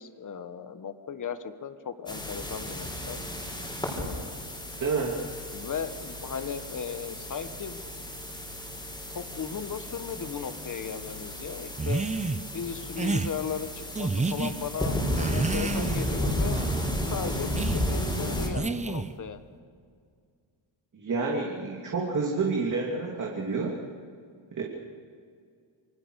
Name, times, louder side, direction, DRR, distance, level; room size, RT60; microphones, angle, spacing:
voice 1, 0.0-3.2 4.0-4.4 5.5-7.8 9.1-12.0 12.5-16.6 17.1-19.4, left 7 dB, 40° left, 10 dB, 1.5 m, -36 dB
sound 1, 2.1-18.5, equal, 10° left, 5.1 m, -33 dB
voice 2, 4.8-5.2 20.9-23.7 24.5-24.6, right 4 dB, 40° right, -1 dB, 3.0 m, -29 dB
sound 2, 11.8-12.4 13.0-13.3 13.9-14.5 15.1-16.1 16.5-16.9 17.6-17.8 18.5-19.2, right 3 dB, 15° right, 0.8 m, -29 dB
26.5 x 24.0 x 6.5 m, 2.2 s
wide cardioid pair, 155°, 46 cm